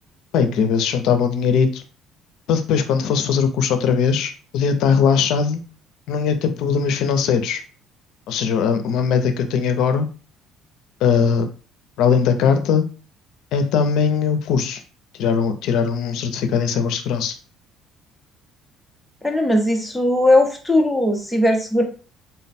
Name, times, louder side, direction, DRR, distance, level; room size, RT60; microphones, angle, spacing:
voice 1, 0.3-1.8 2.5-5.6 6.1-7.6 8.3-10.1 11.0-11.5 12.0-12.8 13.5-14.8 15.2-17.4, left 6 dB, 65° left, 8 dB, 0.5 m, -20 dB
voice 2, 19.2-21.8, left 1 dB, ahead, 2 dB, 0.6 m, -18 dB
3.9 x 2.1 x 4.2 m, 0.36 s
cardioid pair, 170°, 0 cm